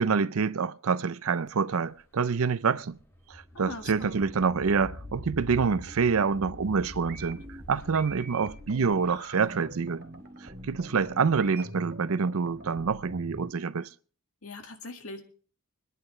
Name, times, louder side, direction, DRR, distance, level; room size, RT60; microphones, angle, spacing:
voice 1, 0.0-3.0 3.3-7.4 7.7-10.0 10.4-13.9, right 5 dB, 75° right, 0.6 m, -27 dB
sound 1, 1.5-10.5, left 1 dB, 15° left, 2.6 m, -45 dB
voice 2, 3.5-4.2 14.4-15.2, left 2 dB, 80° left, 1.9 m, -41 dB
sound 2, 7.0-13.5, right 2 dB, 50° right, 2.8 m, -44 dB
25.5 x 10.5 x 3.2 m
head